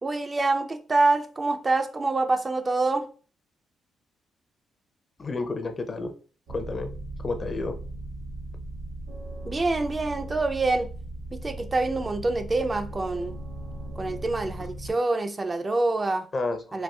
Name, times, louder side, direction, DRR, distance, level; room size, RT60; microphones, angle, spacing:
voice 1, 0.0-3.1 9.5-10.9 11.3-13.4 14.0-16.3 16.7-16.8, right 2 dB, 30° right, 0.4 m, -26 dB
voice 2, 5.2-6.1 6.5-6.9 7.2-7.8 14.0-14.1 16.3-16.8, left 3 dB, 40° left, 0.5 m, -31 dB
sound 1, 6.5-14.9, right 1 dB, 80° right, 1.0 m, -38 dB
4.2 x 2.3 x 2.3 m
supercardioid pair, 65°, 0 cm